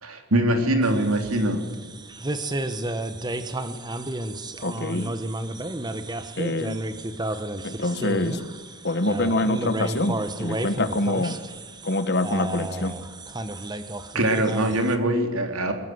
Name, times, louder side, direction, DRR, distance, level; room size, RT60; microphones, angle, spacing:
voice 1, 0.0-1.6 14.1-15.7, right 1 dB, 90° right, 5 dB, 3.8 m, -22 dB
sound 1, 0.8-15.0, right 1 dB, 20° right, 1.3 m, -32 dB
voice 2, 4.6-5.1 6.4-6.8 7.6-8.4 8.8-11.3 11.8-13.0, left 2 dB, 50° left, 11 dB, 1.6 m, -25 dB
23.0 x 22.0 x 8.1 m, 1.4 s
head